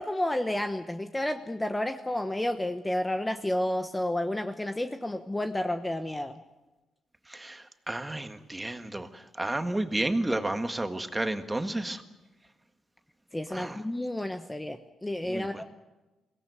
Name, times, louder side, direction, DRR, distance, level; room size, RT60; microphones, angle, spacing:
voice 1, 0.0-6.4 13.3-15.6, left 1 dB, 15° left, 7 dB, 1.1 m, -31 dB
voice 2, 7.3-9.1 9.4-12.0 13.5-13.8 15.2-15.6, right 1 dB, 15° right, 7 dB, 1.8 m, -31 dB
22.5 x 17.5 x 9.4 m, 1.1 s
cardioid pair, 80°, 0 cm